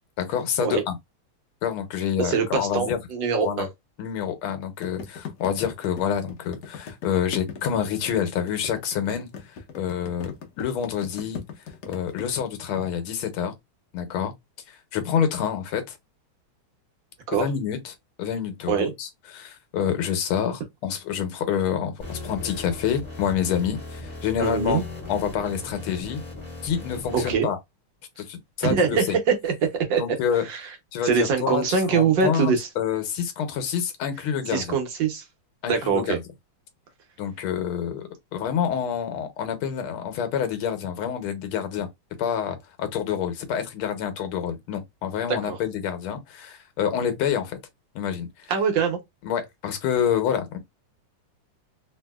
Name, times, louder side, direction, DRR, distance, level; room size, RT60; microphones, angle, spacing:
voice 1, 0.2-1.0 1.6-3.0 3.4-3.6 4.0-11.4 11.9-13.6 13.9-14.3 14.7-16.0 17.3-24.8 25.1-26.2 26.6-27.6 28.2-29.0 30.0-30.4 30.9-31.6 31.9-34.8 35.6-36.2 37.2-41.9 42.2-47.6 47.9-48.5 49.2-50.6, left 8 dB, 85° left, 1.6 m, -27 dB
voice 2, 2.2-3.7 17.3-17.5 18.7-18.9 24.4-24.8 27.1-27.5 28.6-29.5 29.9-30.0 30.3-30.7 31.0-32.7 34.5-35.2 35.7-36.2 45.3-45.6 48.5-49.0, right 5 dB, 70° right, 1.4 m, -23 dB
sound 1, 4.8-12.4, left 6 dB, 65° left, 1.1 m, -38 dB
sound 2, 22.0-27.3, left 2 dB, 5° left, 1.2 m, -38 dB
3.5 x 2.7 x 2.2 m
omnidirectional pair, 2.3 m